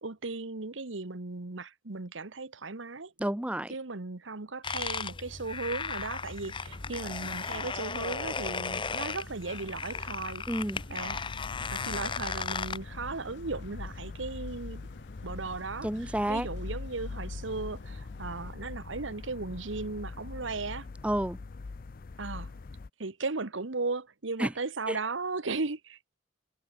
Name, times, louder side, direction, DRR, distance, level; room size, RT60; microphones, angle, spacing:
voice 1, 0.0-3.1 3.7-10.4 10.9-11.2 11.7-14.9 15.2-20.9 22.2-22.5 23.0-26.2, right 3 dB, 80° right, 1.3 m, -36 dB
voice 2, 3.2-3.7 10.5-10.8 15.8-16.5 21.0-21.4 24.4-24.5 24.9-25.0, right 1 dB, 5° right, 0.7 m, -30 dB
sound 1, 4.6-12.8, left 5 dB, 25° left, 0.8 m, -36 dB
sound 2, 6.4-18.6, left 1 dB, 65° left, 1.9 m, -52 dB
sound 3, 11.0-22.9, left 3 dB, 50° left, 0.5 m, -42 dB
head